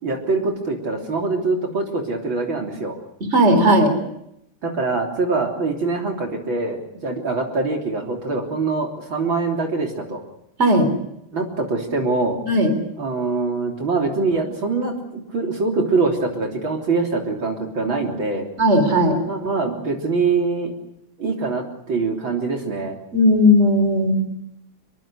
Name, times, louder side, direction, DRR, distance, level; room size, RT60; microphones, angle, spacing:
voice 1, 0.0-3.0 4.6-10.2 11.3-12.4 13.0-18.5 19.2-20.7 21.2-23.0, right 3 dB, 60° right, 2 dB, 4.1 m, -24 dB
voice 2, 3.3-3.9 10.6-10.9 12.5-12.7 18.6-19.2 23.1-24.3, equal, 30° right, 8 dB, 4.1 m, -16 dB
26.5 x 22.5 x 6.4 m, 0.77 s
omnidirectional pair, 2.4 m